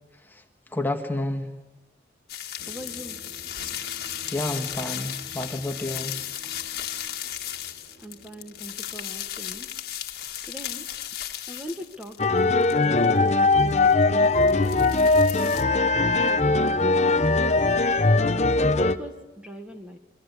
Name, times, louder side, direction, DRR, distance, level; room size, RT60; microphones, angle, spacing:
voice 1, 0.7-1.5 4.3-6.2, left 1 dB, 10° left, 5 dB, 1.7 m, -30 dB
sound 1, 2.3-12.2 12.6-14.0 14.4-15.6, left 11 dB, 55° left, 2.0 m, -35 dB
voice 2, 2.6-3.2 8.0-9.7 10.4-10.9 11.5-15.1 15.4-15.8 16.3-17.7 18.5-20.0, equal, 5° right, 4 dB, 1.5 m, -40 dB
sound 2, 2.6-9.2, right 1 dB, 60° right, 4.3 m, -50 dB
sound 3, 12.2-19.0, left 3 dB, 35° left, 0.9 m, -20 dB
27.0 x 24.0 x 8.3 m, 0.99 s
head